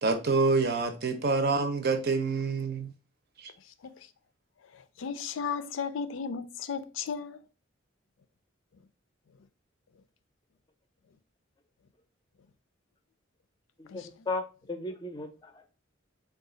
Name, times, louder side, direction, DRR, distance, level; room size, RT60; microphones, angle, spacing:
voice 1, 0.0-2.9, right 3 dB, 55° right, 0.6 m, -27 dB
voice 2, 4.7-7.4 13.9-14.1, left 6 dB, 90° left, 0.4 m, -35 dB
voice 3, 13.8-15.6, left 2 dB, 25° left, 0.5 m, -36 dB
3.8 x 2.3 x 3.7 m
head